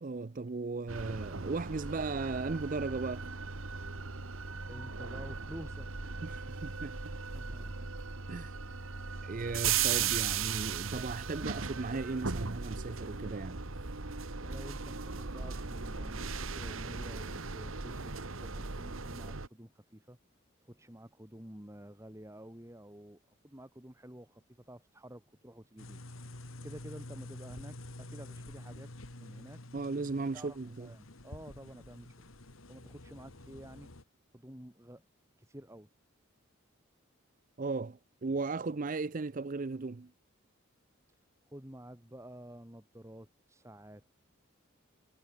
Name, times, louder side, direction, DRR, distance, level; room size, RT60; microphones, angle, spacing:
voice 1, 0.0-3.4 6.2-7.1 8.3-8.6 9.2-13.6 29.7-30.9 37.6-40.1, right 3 dB, 40° right, 0.5 m, -36 dB
sound 1, 0.9-19.5, right 6 dB, 80° right, 1.7 m, -37 dB
voice 2, 4.7-6.1 7.2-7.9 14.4-20.2 20.6-26.0 26.6-28.9 29.2-29.6 30.3-32.2 32.7-33.9 34.3-35.0 35.4-35.9 41.5-44.1, right 1 dB, 15° right, 2.3 m, -50 dB
sound 2, 25.8-34.0, left 1 dB, 85° left, 2.2 m, -48 dB
head